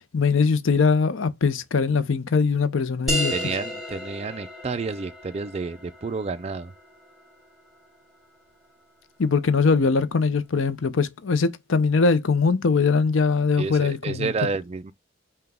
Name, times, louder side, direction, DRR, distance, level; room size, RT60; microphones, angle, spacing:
voice 1, 0.1-3.3 9.2-14.3, left 4 dB, 70° left, 0.6 m, -21 dB
sound 1, 3.1-8.2, equal, ahead, 2.1 m, -33 dB
voice 2, 3.3-6.7 13.6-14.9, right 4 dB, 30° right, 0.4 m, -30 dB
5.7 x 2.3 x 3.4 m
head